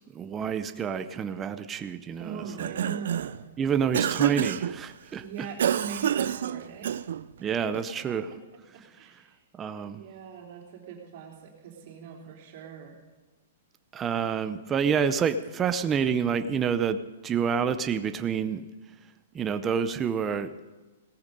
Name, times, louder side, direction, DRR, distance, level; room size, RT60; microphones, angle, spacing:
voice 1, 0.1-2.7 3.6-5.2 7.4-8.3 9.6-10.1 13.9-18.6 19.3-20.5, right 7 dB, 10° right, 10 dB, 0.6 m, -28 dB
voice 2, 2.1-3.5 5.2-7.0 7.4-7.5 8.7-9.4 9.8-13.0, right 6 dB, 35° right, -1 dB, 3.7 m, -41 dB
Cough, 2.4-3.4 3.9-4.8 5.6-7.3, right 9 dB, 60° right, 0.4 m, -28 dB
18.0 x 14.0 x 5.3 m, 1.2 s
hypercardioid pair, 175°, 0 cm